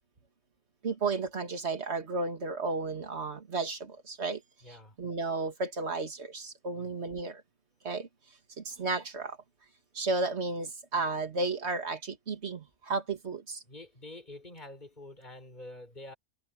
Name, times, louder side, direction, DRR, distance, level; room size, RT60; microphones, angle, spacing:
voice 1, 0.8-4.4 5.0-7.4 7.8-8.1 8.6-9.4 9.9-13.6, right 3 dB, 50° right, 2.4 m, -33 dB
voice 2, 4.6-5.0 6.8-6.9 13.7-16.1, left 2 dB, 30° left, 5.7 m, -47 dB
omnidirectional pair, 1.4 m